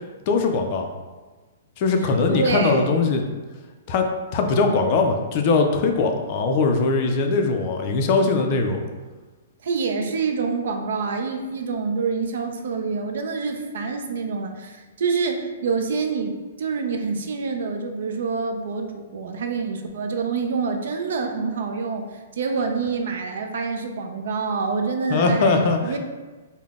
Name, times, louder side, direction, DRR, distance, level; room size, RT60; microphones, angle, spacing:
voice 1, 0.3-0.9 1.8-3.2 3.9-4.1 4.3-8.9 25.1-26.0, left 4 dB, 35° left, 4 dB, 0.4 m, -21 dB
voice 2, 2.3-3.0 9.6-26.0, right 4 dB, 65° right, 5 dB, 0.4 m, -26 dB
3.8 x 2.0 x 3.5 m, 1.3 s
hypercardioid pair, 165°, 0 cm